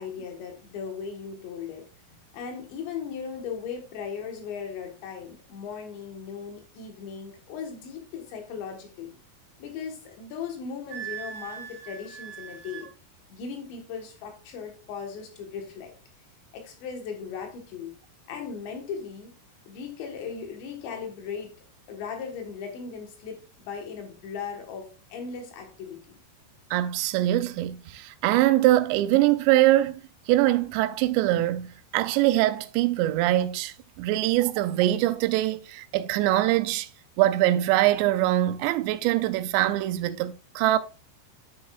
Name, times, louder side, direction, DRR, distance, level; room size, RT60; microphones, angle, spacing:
voice 1, 0.0-9.2 9.6-12.9 13.3-15.9 16.5-17.9 18.3-19.3 19.7-21.5 21.9-26.2, left 6 dB, 90° left, 3.7 m, -38 dB
Wind instrument woodwind instrument, 10.9-12.9, right 8 dB, 60° right, 1.8 m, -40 dB
voice 2, 26.7-30.0 30.3-36.9 37.2-40.8, right 15 dB, 90° right, 2.8 m, -23 dB
10.5 x 6.2 x 2.4 m
omnidirectional pair, 4.9 m